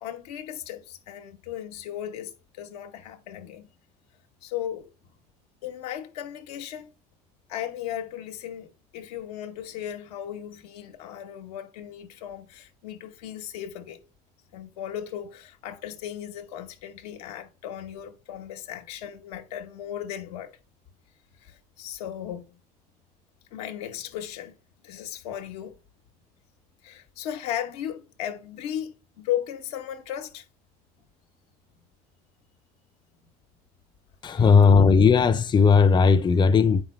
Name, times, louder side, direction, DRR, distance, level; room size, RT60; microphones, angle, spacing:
voice 1, 0.0-3.7 4.4-4.9 5.6-6.9 7.5-14.0 14.5-20.5 21.4-22.6 23.5-24.5 24.8-25.8 26.8-30.4 34.3-34.4, left 11 dB, 90° left, 1.0 m, -36 dB
voice 2, 34.2-36.8, left 5 dB, 25° left, 0.5 m, -17 dB
8.2 x 5.3 x 3.1 m
supercardioid pair, 90°, 20 cm